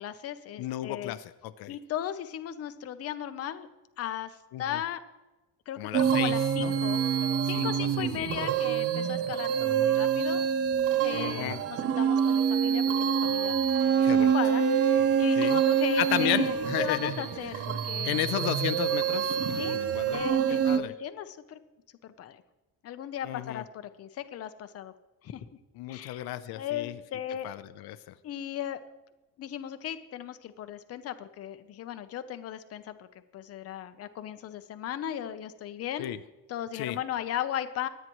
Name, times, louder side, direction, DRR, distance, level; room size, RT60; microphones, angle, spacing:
voice 1, 0.0-1.2 1.7-3.7 4.0-5.0 5.7-7.0 7.4-10.4 11.0-18.3 19.6-19.8 20.1-21.6 22.0-22.4 22.8-24.9 25.2-25.4 25.9-26.3 26.5-27.5 28.2-28.8 29.4-33.1 33.3-36.1 36.5-37.9, left 10 dB, 40° left, 10 dB, 0.7 m, -37 dB
voice 2, 0.6-1.8 4.5-4.8 5.8-6.7 7.5-8.3 11.1-11.6 14.0-14.3 15.4-15.6 16.0-17.1 18.0-20.9 23.2-23.6 25.8-27.0 27.4-28.1 36.0-36.2 36.7-37.0, left 14 dB, 80° left, 12 dB, 0.7 m, -33 dB
sound 1, 5.9-20.8, right 7 dB, 40° right, 0.6 m, -26 dB
Bowed string instrument, 13.7-19.5, right 5 dB, 60° right, 1.6 m, -48 dB
23.5 x 9.2 x 3.1 m, 1.1 s
cardioid pair, 165°, 37 cm